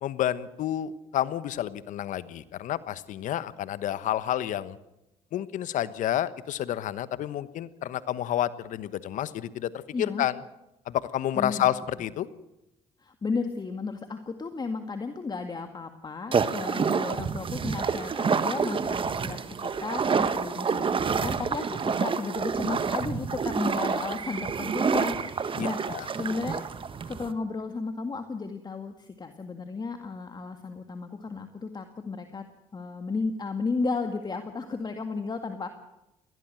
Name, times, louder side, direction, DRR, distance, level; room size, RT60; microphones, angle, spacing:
voice 1, 0.0-4.8 5.3-9.7 10.0-10.4 10.9-12.3 25.6-26.1, left 12 dB, 70° left, 15 dB, 1.2 m, -30 dB
voice 2, 9.9-10.3 11.4-11.7 13.0-26.7 27.1-32.5 32.7-35.7, left 4 dB, 30° left, 7 dB, 2.0 m, -34 dB
sound 1, 16.3-27.3, right 5 dB, 40° right, 1.5 m, -28 dB
21.0 x 17.5 x 7.8 m, 0.93 s
supercardioid pair, 70°, 14 cm